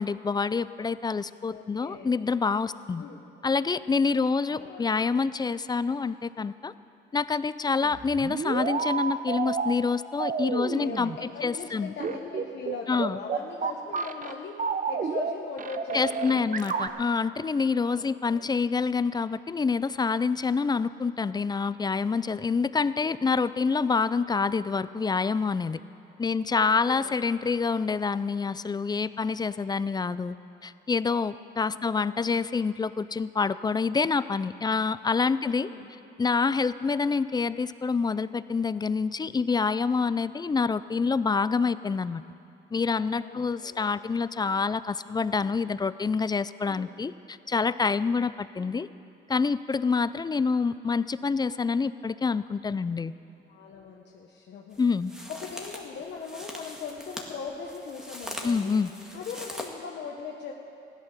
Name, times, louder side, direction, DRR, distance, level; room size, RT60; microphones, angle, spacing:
voice 1, 0.0-3.1 3.4-6.7 7.1-11.1 11.4-11.9 12.9-13.2 15.9-25.8 26.2-30.3 30.6-35.7 36.2-42.2 42.7-48.9 49.3-53.1 54.8-55.1 58.4-58.9, left 4 dB, 20° left, 16 dB, 0.4 m, -27 dB
voice 2, 1.5-2.2 3.0-3.2 4.4-4.8 5.1-5.2 7.6-8.0 10.4-17.0 17.9-18.5 23.9-24.2 26.5-27.2 31.6-32.2 35.5-35.9 43.1-43.9 46.6-46.9 53.5-54.8 55.3-58.8 59.1-60.5, left 5 dB, 60° left, 0 dB, 1.2 m, -40 dB
sound 1, 7.9-9.7 10.2-11.2 12.0-14.3 14.6-15.3 15.6-16.9, right 6 dB, 40° right, 0.8 m, -30 dB
sound 2, 54.7-59.7, equal, 5° right, 1.8 m, -41 dB
15.5 x 11.5 x 6.5 m, 2.6 s
cardioid pair, 90°, 20 cm